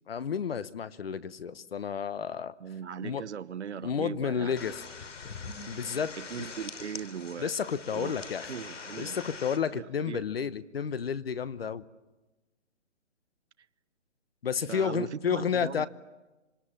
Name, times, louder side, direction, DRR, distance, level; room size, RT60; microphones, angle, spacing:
voice 1, 0.1-2.6 3.0-3.2 3.8-4.8 5.7-6.5 7.4-8.5 9.0-11.8 14.4-15.9, left 7 dB, 55° left, 1.0 m, -31 dB
voice 2, 2.6-4.6 6.2-7.5 7.9-9.2 9.7-10.2 14.7-15.9, right 8 dB, 65° right, 1.0 m, -39 dB
sound 1, 4.6-9.6, left 4 dB, 80° left, 3.4 m, -43 dB
26.5 x 25.5 x 7.4 m
hypercardioid pair, 175°, 37 cm